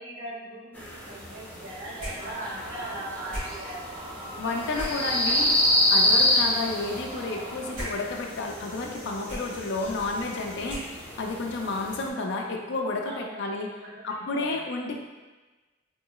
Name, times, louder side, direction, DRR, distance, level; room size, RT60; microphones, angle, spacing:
voice 1, 0.0-5.4 6.0-6.4 10.4-10.6 13.1-14.6, right 1 dB, 60° right, -6 dB, 1.0 m, -41 dB
sound 1, 0.7-12.1, left 1 dB, 10° left, 0.6 m, -28 dB
sound 2, 2.0-11.3, equal, 40° right, 1.4 m, -42 dB
sound 3, 2.2-7.7, right 1 dB, 25° right, 0.8 m, -42 dB
voice 2, 4.4-5.5 5.9-13.7 14.0-15.0, left 3 dB, 65° left, 1 dB, 0.4 m, -31 dB
3.8 x 2.9 x 2.3 m, 1.2 s
head